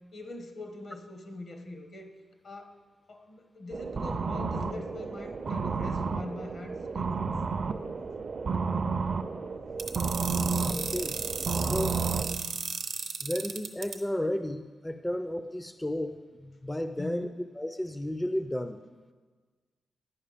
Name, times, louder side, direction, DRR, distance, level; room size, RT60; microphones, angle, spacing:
voice 1, 0.1-2.1 2.4-2.7 3.1-7.4 17.0-17.4, left 2 dB, 65° left, 5 dB, 1.0 m, -43 dB
sound 1, 3.7-12.3, right 4 dB, 50° right, 0.4 m, -31 dB
sound 2, 9.8-13.9, right 6 dB, 80° right, 0.7 m, -34 dB
voice 2, 10.7-11.2 11.6-12.0 13.2-17.3 17.6-18.8, left 1 dB, 15° left, 9 dB, 0.4 m, -33 dB
9.9 x 5.3 x 5.0 m, 1.4 s
cardioid pair, 75°, 0 cm